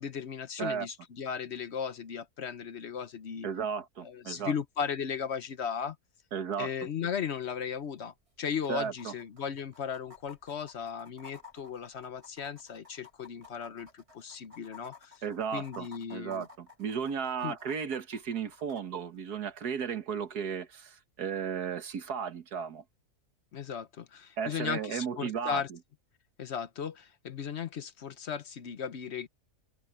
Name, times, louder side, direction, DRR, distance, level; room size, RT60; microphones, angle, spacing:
voice 1, 0.0-3.5 4.0-6.0 6.6-15.2 15.5-16.5 17.4-17.6 23.5-25.7 26.4-29.3, left 7 dB, 50° left, 1.0 m, -36 dB
voice 2, 3.4-4.5 6.3-6.7 8.7-9.1 15.2-22.8 24.4-25.6, right 7 dB, 80° right, 1.9 m, -34 dB
sound 1, 7.5-7.6 7.8-7.9 8.5-18.8 20.5-20.6, left 5 dB, 40° right, 4.8 m, -54 dB
omnidirectional pair, 1.7 m